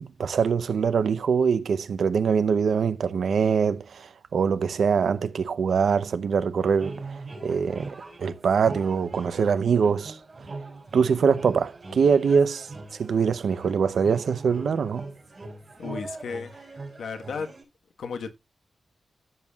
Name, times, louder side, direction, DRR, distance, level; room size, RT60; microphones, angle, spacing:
voice 1, 0.0-10.2 10.9-12.7 13.0-15.0, right 6 dB, 75° right, 0.7 m, -23 dB
sound 1, 6.6-17.6, right 3 dB, 30° right, 6.0 m, -41 dB
voice 2, 15.8-16.7 17.0-17.5 18.0-18.4, left 5 dB, 85° left, 1.3 m, -34 dB
15.0 x 7.2 x 2.4 m
wide cardioid pair, 145°, 0 cm